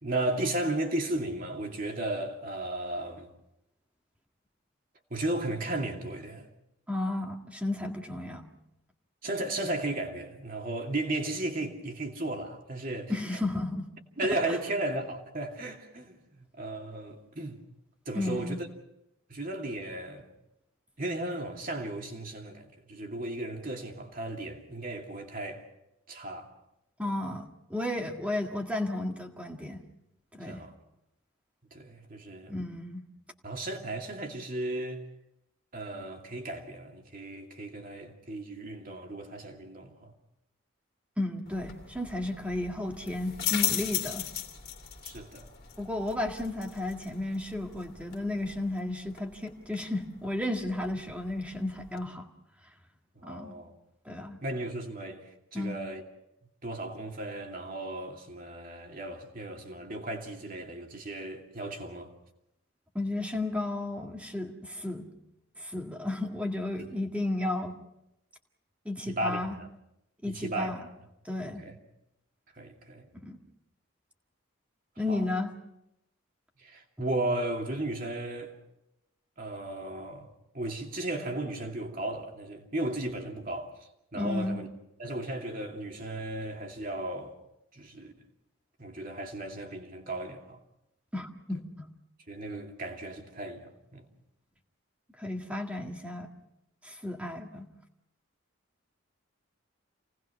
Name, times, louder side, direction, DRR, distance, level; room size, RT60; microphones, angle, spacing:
voice 1, 0.0-3.3 5.1-6.5 9.2-13.1 14.2-17.6 18.1-18.7 19.3-20.3 21.0-25.6 26.1-26.5 30.4-30.7 31.7-32.6 33.4-35.0 35.7-40.1 45.0-45.5 53.2-53.7 54.4-56.0 56.6-62.1 69.1-69.7 70.3-70.9 71.6-71.8 72.6-73.1 75.1-75.3 76.6-78.5 79.4-80.3 80.5-83.7 84.1-84.7 85.0-87.3 87.7-88.1 88.8-90.6 92.3-94.1, right 1 dB, 40° right, 2.6 m, -35 dB
voice 2, 6.9-8.4 13.1-13.9 18.1-18.6 27.0-29.8 30.3-30.6 32.5-33.1 41.2-44.3 45.8-52.3 53.2-53.6 54.0-54.4 55.5-55.8 62.9-65.1 65.6-67.8 68.8-69.6 70.2-70.8 71.2-71.6 73.1-73.4 75.0-75.5 84.1-84.6 91.1-91.9 95.2-96.3 96.8-97.7, left 2 dB, 5° right, 1.8 m, -33 dB
sound 1, 41.5-52.1, left 11 dB, 45° left, 2.6 m, -38 dB
28.5 x 19.0 x 5.7 m
head